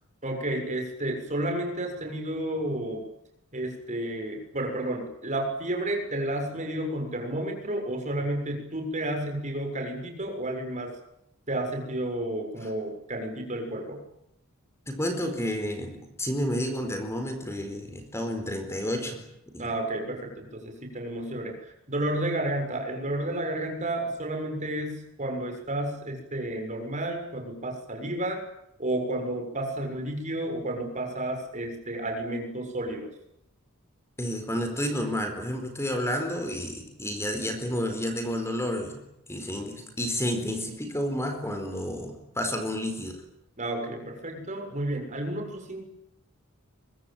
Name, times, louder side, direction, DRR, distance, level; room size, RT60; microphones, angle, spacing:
voice 1, 0.2-3.0 3.5-10.9 11.5-14.0 19.6-21.6 21.9-28.4 28.8-33.1 43.6-45.8, right 1 dB, 35° right, 3 dB, 6.9 m, -31 dB
voice 2, 14.9-19.3 19.5-19.7 34.2-39.0 39.3-43.2, equal, 15° left, 6 dB, 4.5 m, -30 dB
24.0 x 23.5 x 9.1 m, 0.79 s
head